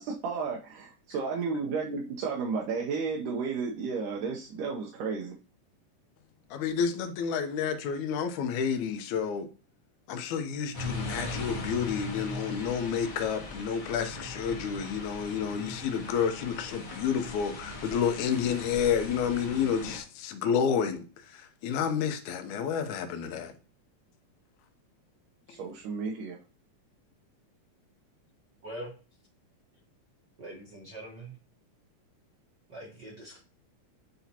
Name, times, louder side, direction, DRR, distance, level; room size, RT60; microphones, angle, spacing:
voice 1, 0.0-5.3 25.5-26.4, right 5 dB, 80° right, 2.4 m, -33 dB
voice 2, 6.5-9.5 10.1-23.5, left 7 dB, 75° left, 2.1 m, -30 dB
sound 1, 10.7-20.0, left 2 dB, 50° left, 1.0 m, -39 dB
voice 3, 30.4-31.3 32.7-33.4, right 1 dB, 50° right, 1.3 m, -42 dB
9.1 x 4.2 x 2.8 m
omnidirectional pair, 3.7 m